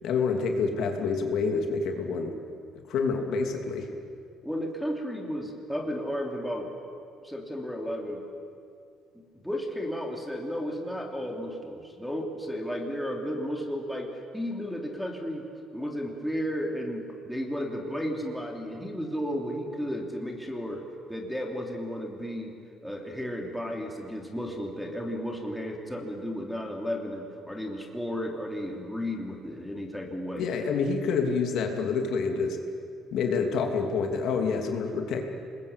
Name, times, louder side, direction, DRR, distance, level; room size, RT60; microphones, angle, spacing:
voice 1, 0.0-2.3 2.9-3.9 30.4-32.6 33.1-35.2, left 5 dB, 65° left, 3 dB, 2.9 m, -27 dB
voice 2, 4.4-6.7 7.2-8.2 9.4-15.4 15.7-20.8 21.1-22.5 22.8-30.5, equal, ahead, 0 dB, 3.0 m, -33 dB
27.5 x 21.0 x 8.5 m, 2.4 s
cardioid pair, 135°, 0 cm